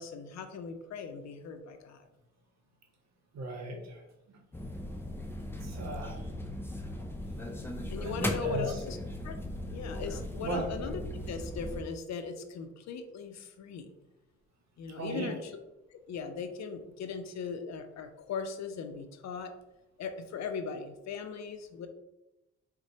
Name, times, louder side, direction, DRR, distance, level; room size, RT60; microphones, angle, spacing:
voice 1, 0.0-2.1 7.9-9.0 9.2-9.4 9.7-13.9 14.8-15.6 15.9-19.5 20.0-21.9, left 5 dB, 65° left, 8 dB, 0.5 m, -39 dB
voice 2, 3.3-4.0 5.6-6.3 8.0-8.8 10.4-10.6 15.0-15.3, right 2 dB, 60° right, 2 dB, 0.8 m, -36 dB
sound 1, 4.5-11.8, left 1 dB, 10° left, 0.4 m, -38 dB
4.1 x 2.2 x 2.7 m, 0.94 s
cardioid pair, 65°, 30 cm